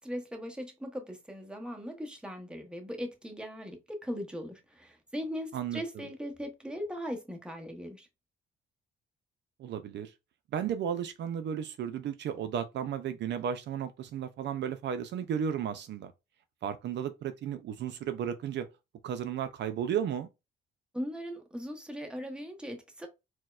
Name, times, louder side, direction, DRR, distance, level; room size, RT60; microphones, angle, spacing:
voice 1, 0.0-8.1 20.9-23.1, equal, 5° right, 0.8 m, -39 dB
voice 2, 9.6-10.1 10.5-16.1 16.6-18.7 19.0-20.3, right 8 dB, 60° right, 0.4 m, -34 dB
4.2 x 2.1 x 2.3 m
cardioid pair, 90°, 20 cm